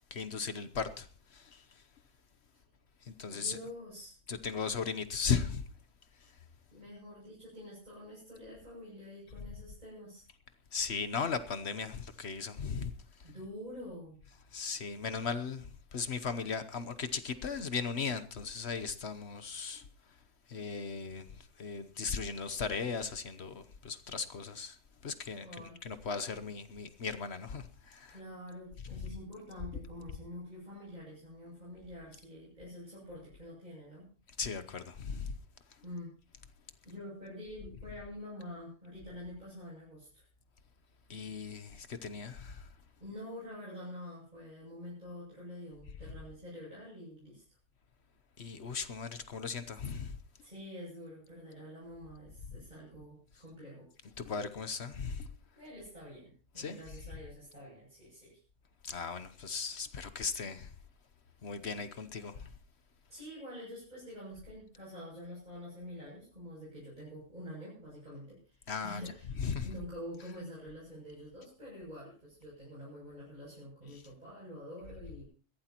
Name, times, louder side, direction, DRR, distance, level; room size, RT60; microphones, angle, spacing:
voice 1, 0.1-1.1 1.3-1.6 3.1-3.6 4.3-5.6 10.7-12.9 14.5-19.8 20.5-21.3 21.6-24.8 25.0-25.5 25.8-28.1 34.4-35.3 41.1-42.7 48.4-50.2 54.2-55.3 56.6-56.8 58.8-60.7 61.4-62.5 68.7-69.0 69.4-69.7, left 5 dB, 60° left, 1.2 m, -37 dB
voice 2, 3.3-4.2 6.7-10.2 13.2-14.2 25.4-25.8 28.1-34.1 35.8-36.1 36.8-40.3 43.0-47.4 50.4-53.9 55.5-58.4 63.1-75.2, equal, 35° right, 8.1 m, -47 dB
21.5 x 16.0 x 3.0 m
omnidirectional pair, 1.3 m